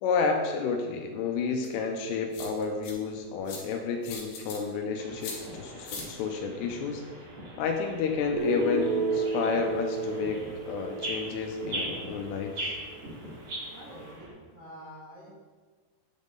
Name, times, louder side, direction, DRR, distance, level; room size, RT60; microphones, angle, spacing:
voice 1, 0.0-7.0 7.6-12.8, left 5 dB, 90° left, 3 dB, 2.8 m, -31 dB
sound 1, 1.6-1.7 2.3-2.9 3.5-3.6 4.0-4.6 5.2-5.4 5.9-6.1, left 5 dB, 70° left, 3.1 m, -39 dB
sound 2, 5.0-14.3, right 1 dB, 40° right, 2.7 m, -40 dB
Guitar, 8.4-12.3, right 4 dB, 60° right, 2.3 m, -32 dB
voice 2, 13.7-15.3, equal, 80° right, -8 dB, 1.3 m, -47 dB
10.5 x 3.6 x 3.8 m, 1.4 s
omnidirectional pair, 4.9 m